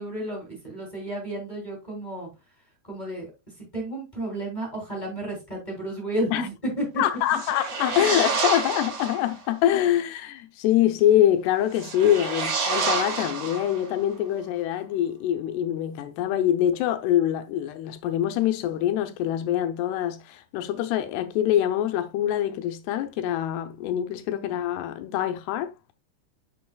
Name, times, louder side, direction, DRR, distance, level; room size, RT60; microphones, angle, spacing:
voice 1, 0.0-2.3 2.8-3.3 3.6-7.0 12.0-12.2 12.7-12.9, right 1 dB, 15° left, 2.1 m, -32 dB
voice 2, 7.0-25.9, left 11 dB, 80° left, 2.5 m, -24 dB
sound 1, 7.3-9.3 11.7-14.0, right 4 dB, 65° right, 1.4 m, -28 dB
8.3 x 6.8 x 2.2 m
omnidirectional pair, 5.1 m